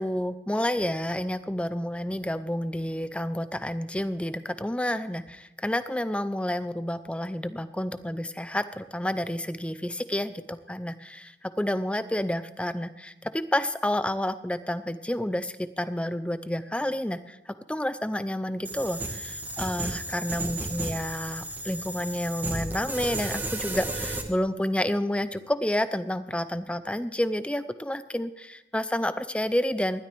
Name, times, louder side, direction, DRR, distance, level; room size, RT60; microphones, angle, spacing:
voice 1, 0.0-17.4 17.7-30.1, left 1 dB, 5° left, 13 dB, 0.5 m, -30 dB
sound 1, 18.6-24.2, right 2 dB, 10° right, 1.3 m, -33 dB
20.0 x 12.5 x 3.4 m, 0.93 s
head